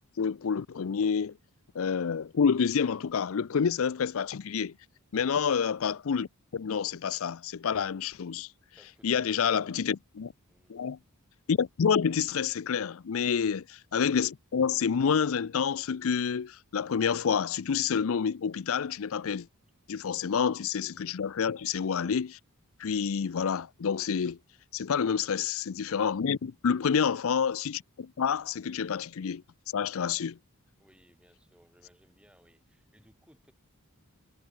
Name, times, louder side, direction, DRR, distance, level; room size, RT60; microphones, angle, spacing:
voice 1, 0.2-1.3 1.7-4.7 5.1-8.5 9.0-10.3 10.7-11.0 11.5-19.5 19.9-22.4 22.8-24.4 24.7-29.4 29.7-30.4, left 6 dB, 65° left, 0.5 m, -28 dB
voice 2, 8.8-9.8 10.5-10.8 13.3-13.6 20.9-21.2 25.0-25.2 26.6-27.0 30.8-33.5, equal, 5° right, 6.8 m, -62 dB
head